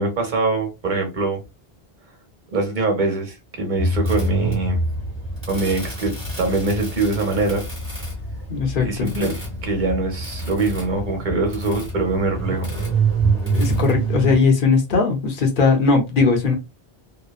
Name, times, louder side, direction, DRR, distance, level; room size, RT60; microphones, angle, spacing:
voice 1, 0.0-1.4 2.5-4.8 5.5-7.6 8.8-9.3 9.6-12.7, right 3 dB, 50° right, 1.0 m, -23 dB
sound 1, 3.8-14.4, right 3 dB, 10° right, 1.2 m, -26 dB
voice 2, 8.5-9.1 13.5-16.5, left 4 dB, 55° left, 0.9 m, -19 dB
2.8 x 2.2 x 2.3 m
omnidirectional pair, 1.1 m